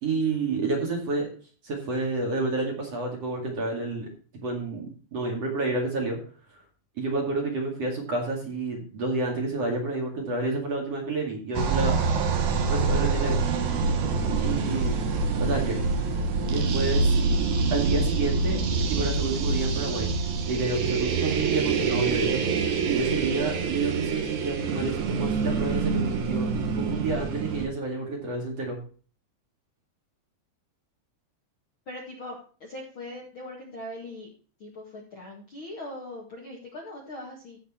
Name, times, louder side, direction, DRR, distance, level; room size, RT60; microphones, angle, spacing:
voice 1, 0.0-1.3 1.6-4.1 4.3-6.2 7.0-12.0 12.7-13.4 14.4-15.0 15.4-15.8 16.5-17.2 17.7-18.6 18.9-20.1 20.5-22.4 22.8-28.8, right 3 dB, 45° right, 0 dB, 2.5 m, -29 dB
sound 1, 11.5-27.7, right 4 dB, 80° right, 1.6 m, -26 dB
voice 2, 17.3-17.6 31.8-34.3 34.6-37.6, left 1 dB, 85° left, -1 dB, 1.1 m, -41 dB
15.5 x 5.3 x 4.3 m, 0.41 s
omnidirectional pair, 5.6 m